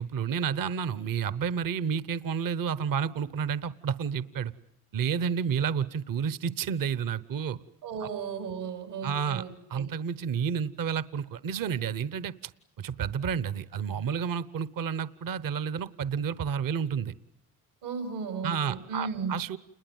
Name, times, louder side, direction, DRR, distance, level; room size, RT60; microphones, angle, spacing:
voice 1, 0.0-4.5 4.9-7.6 9.0-9.4 9.7-12.3 12.8-17.1 18.4-19.6, right 7 dB, 50° right, 16 dB, 1.1 m, -30 dB
voice 2, 7.8-9.9 17.8-19.4, right 5 dB, 80° right, 7 dB, 5.2 m, -35 dB
29.0 x 21.5 x 9.3 m, 0.78 s
supercardioid pair, 65°, 42 cm